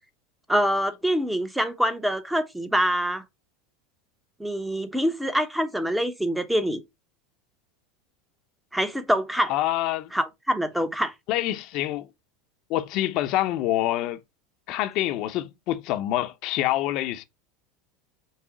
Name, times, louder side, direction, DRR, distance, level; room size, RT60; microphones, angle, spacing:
voice 1, 0.5-3.2 4.4-6.8 8.7-9.5 10.1-11.1, equal, 5° right, 0.7 m, -25 dB
voice 2, 9.5-10.1 11.3-12.1 12.7-14.2 14.7-17.2, left 14 dB, 55° left, 0.6 m, -26 dB
5.5 x 2.0 x 4.6 m
hypercardioid pair, 100°, 0 cm